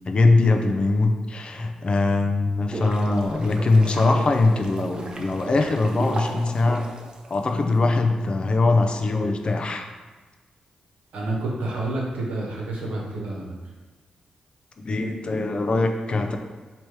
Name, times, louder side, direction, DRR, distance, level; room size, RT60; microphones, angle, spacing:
voice 1, 0.1-6.9 7.3-9.9 14.8-16.4, left 3 dB, 45° left, 4 dB, 0.5 m, -21 dB
sound 1, 2.4-7.7, right 1 dB, 40° right, 0.6 m, -35 dB
voice 2, 11.1-13.4, right 2 dB, 85° right, -3 dB, 1.0 m, -29 dB
3.2 x 2.9 x 4.6 m, 1.3 s
cardioid pair, 55°, 2 cm